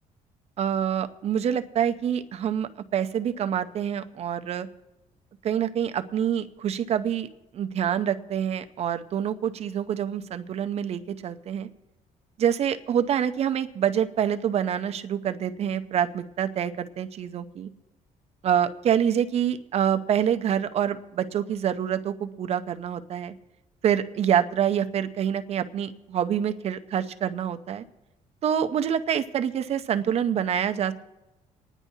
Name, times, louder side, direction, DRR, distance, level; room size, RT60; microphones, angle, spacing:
voice 1, 0.6-4.7 5.4-7.3 7.5-11.7 12.4-17.7 18.4-23.3 23.8-27.8 28.4-30.9, right 9 dB, 50° right, 10 dB, 0.6 m, -26 dB
27.5 x 9.9 x 2.7 m, 1.0 s
cardioid pair, 135°, 14 cm